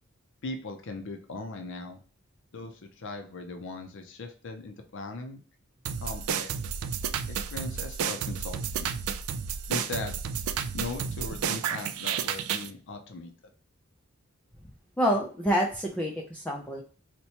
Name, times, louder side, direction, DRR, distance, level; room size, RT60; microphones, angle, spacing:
voice 1, 0.4-2.0 2.5-5.4 6.0-6.5 7.3-8.9 9.7-10.2 10.7-13.3, left 3 dB, 60° left, 6 dB, 0.5 m, -39 dB
sound 1, 5.8-12.7, right 7 dB, 80° right, 0.4 m, -32 dB
voice 2, 15.0-16.8, equal, 5° left, -2 dB, 0.4 m, -27 dB
4.2 x 2.2 x 2.8 m, 0.39 s
head